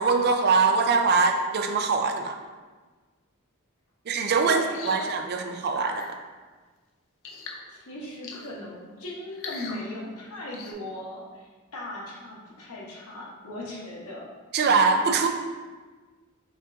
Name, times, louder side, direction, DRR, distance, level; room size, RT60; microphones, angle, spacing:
voice 1, 0.0-2.4 4.1-5.9 14.5-15.3, right 4 dB, 45° right, 5 dB, 0.4 m, -22 dB
voice 2, 4.4-6.0 7.7-14.3, left 1 dB, 90° left, -4 dB, 1.1 m, -38 dB
sound 1, 4.7-5.1 5.7-6.1 7.2-7.6 8.2-8.6 9.3-9.8 10.5-10.7, left 5 dB, 60° left, 0.5 m, -40 dB
5.2 x 2.5 x 3.8 m, 1.4 s
head